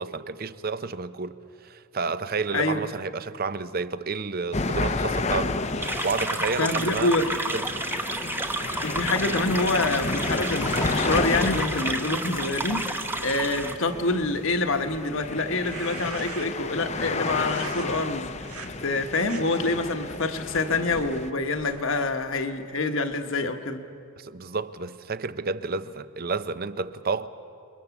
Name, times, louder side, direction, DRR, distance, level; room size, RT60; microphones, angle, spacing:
voice 1, 0.0-1.4 1.6-5.6 5.8-7.1 7.5-7.6 24.2-27.3, right 4 dB, 45° right, 0.7 m, -30 dB
sound 1, 4.5-21.3, left 3 dB, 30° left, 0.8 m, -32 dB
sound 2, 5.8-13.7, right 2 dB, 10° right, 1.0 m, -31 dB
voice 2, 6.6-7.3 8.8-18.3 18.6-23.8, left 2 dB, 60° left, 1.3 m, -26 dB
sound 3, 15.5-16.7 17.4-17.9 18.4-18.7 19.1-19.4 20.0-22.6, right 5 dB, 90° right, 2.1 m, -43 dB
29.5 x 22.0 x 7.2 m
head